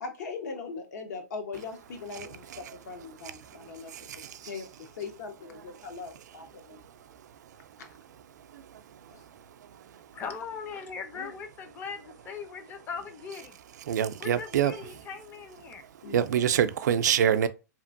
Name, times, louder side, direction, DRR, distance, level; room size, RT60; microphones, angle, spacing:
voice 1, 0.0-4.6 5.0-6.8 7.8-7.9 9.1-9.2 11.1-11.3 16.0-16.7, left 4 dB, 70° left, 0.8 m, -40 dB
voice 2, 3.5-4.4 8.5-8.6 13.9-14.7 16.1-17.5, right 9 dB, 75° right, 0.4 m, -26 dB
voice 3, 10.1-13.6 14.2-15.8, left 5 dB, 20° left, 0.5 m, -39 dB
2.9 x 2.5 x 2.5 m
hypercardioid pair, 140°, 9 cm